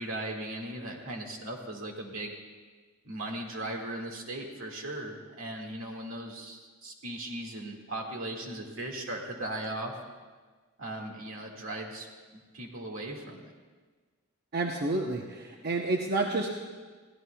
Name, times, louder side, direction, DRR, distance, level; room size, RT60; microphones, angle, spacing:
voice 1, 0.0-2.4 3.0-10.0 10.8-12.1 12.3-13.5, right 1 dB, 75° right, 1 dB, 2.0 m, -38 dB
voice 2, 14.5-16.5, right 2 dB, 50° right, 1 dB, 0.8 m, -29 dB
23.0 x 15.5 x 2.3 m, 1.4 s
head